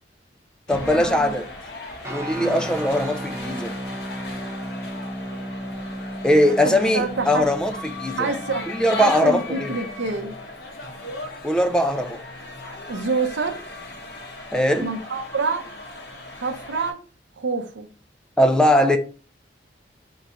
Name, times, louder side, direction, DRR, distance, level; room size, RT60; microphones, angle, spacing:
sound 1, 0.7-16.9, left 2 dB, 60° left, 1.2 m, -37 dB
voice 1, 0.7-1.5 2.1-3.8 6.2-7.7 8.0-8.3 8.7-9.7 11.4-12.2 14.5-14.9 18.4-19.0, left 1 dB, 5° left, 0.3 m, -20 dB
sound 2, 2.0-10.3, equal, 15° right, 0.9 m, -35 dB
voice 2, 6.5-7.5 8.2-8.7 9.0-10.4 12.9-13.6 14.8-15.7 16.4-17.0 17.4-17.9, right 4 dB, 80° right, 0.6 m, -27 dB
3.8 x 2.4 x 4.3 m
head